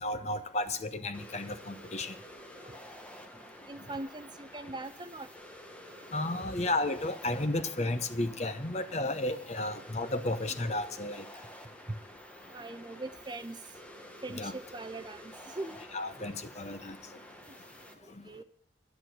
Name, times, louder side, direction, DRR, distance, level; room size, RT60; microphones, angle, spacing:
voice 1, 0.0-2.1 6.1-11.2 14.3-14.5 15.9-17.0, left 2 dB, 35° left, 10 dB, 0.9 m, -33 dB
sound 1, 1.1-17.9, equal, 5° left, 1.2 m, -50 dB
voice 2, 3.7-5.3 12.5-13.6 14.2-15.7 16.2-16.3 18.3-18.4, right 2 dB, 25° right, 11 dB, 0.6 m, -41 dB
11.0 x 10.5 x 6.2 m, 0.63 s
head